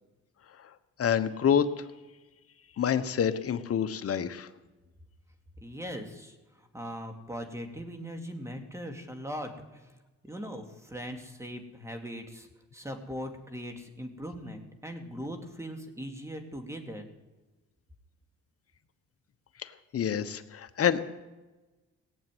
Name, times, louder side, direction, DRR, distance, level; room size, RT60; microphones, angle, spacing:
voice 1, 1.0-1.7 2.8-4.5 19.6-21.0, left 8 dB, 50° left, 10 dB, 1.2 m, -27 dB
voice 2, 5.6-10.0 10.2-17.1, equal, 10° right, 4 dB, 2.6 m, -40 dB
18.5 x 7.4 x 9.3 m, 1.2 s
cardioid pair, 90°, 30 cm